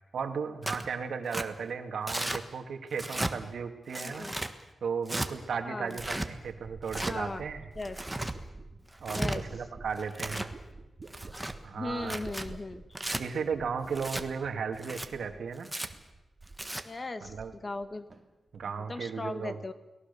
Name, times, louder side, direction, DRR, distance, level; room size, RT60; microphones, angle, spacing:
voice 1, 0.1-4.3 4.8-7.6 9.0-10.5 11.6-12.2 13.2-15.7 17.2-17.5 18.5-19.6, right 6 dB, 80° right, 6 dB, 2.1 m, -35 dB
Tearing, 0.6-0.9 1.3-1.5 2.1-2.4 2.9-3.3 3.9-4.5 5.1-5.3 5.9-6.3 6.9-7.1 7.8-8.3 8.9-9.4 10.0-10.5 11.1-11.5 12.0-12.5 13.0-13.2 14.0-14.2 14.8-15.1 15.6-15.9 16.5-16.8, right 1 dB, 10° right, 1.4 m, -34 dB
voice 2, 4.0-4.3 5.6-6.0 7.1-7.4 7.7-8.0 9.1-9.4 11.8-12.8 16.8-18.1 18.9-19.7, left 2 dB, 30° left, 11 dB, 1.3 m, -38 dB
sound 1, 5.9-15.6 15.8-16.7 17.0-17.9 18.1-18.6, right 3 dB, 35° right, 2.6 m, -49 dB
29.5 x 19.0 x 6.9 m, 1.0 s
wide cardioid pair, 125°, 0 cm